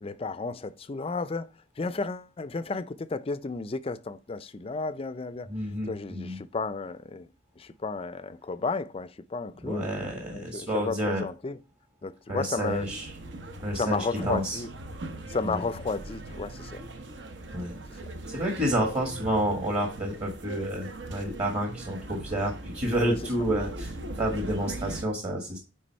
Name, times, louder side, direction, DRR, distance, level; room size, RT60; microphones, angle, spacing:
voice 1, 0.0-5.5 5.8-7.3 7.6-9.9 10.3-11.6 12.0-12.9 13.7-14.7 15.3-16.8 23.0-23.2, left 3 dB, 30° left, 0.4 m, -33 dB
voice 2, 5.5-6.4 9.6-11.2 12.3-13.0 13.6-14.6 15.4-15.6 17.5-25.6, right 1 dB, 35° right, 1.6 m, -30 dB
sound 1, 12.6-25.0, right 1 dB, 65° right, 0.9 m, -40 dB
9.3 x 3.5 x 4.4 m
head